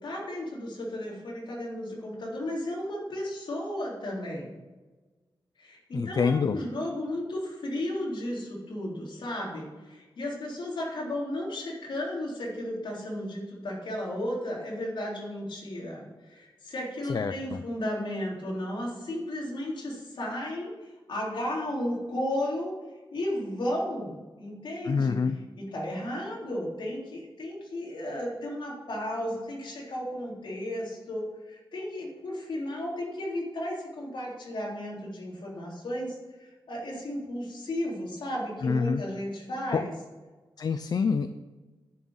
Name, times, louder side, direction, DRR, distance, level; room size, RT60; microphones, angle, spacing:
voice 1, 0.0-4.6 5.6-22.7 23.1-25.2 25.6-39.9, left 1 dB, 65° left, -3 dB, 3.7 m, -34 dB
voice 2, 5.9-6.6 17.0-17.6 24.9-25.4 38.6-39.0 39.7-39.8 40.6-41.3, left 5 dB, 45° left, 10 dB, 0.5 m, -26 dB
10.5 x 6.4 x 8.7 m, 1.3 s
wide cardioid pair, 175°, 9 cm